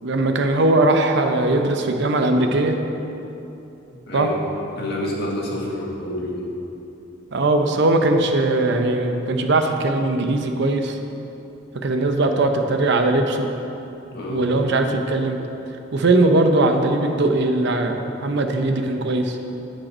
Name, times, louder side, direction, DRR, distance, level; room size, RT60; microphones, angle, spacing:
voice 1, 0.0-2.8 4.1-4.3 7.3-11.0 11.7-13.5 14.3-15.4 15.9-19.4, right 2 dB, 65° right, 5 dB, 0.7 m, -20 dB
voice 2, 3.9-4.3 4.8-6.5 14.1-14.4, left 1 dB, 55° left, -3 dB, 1.8 m, -28 dB
15.0 x 5.3 x 4.3 m, 3.0 s
head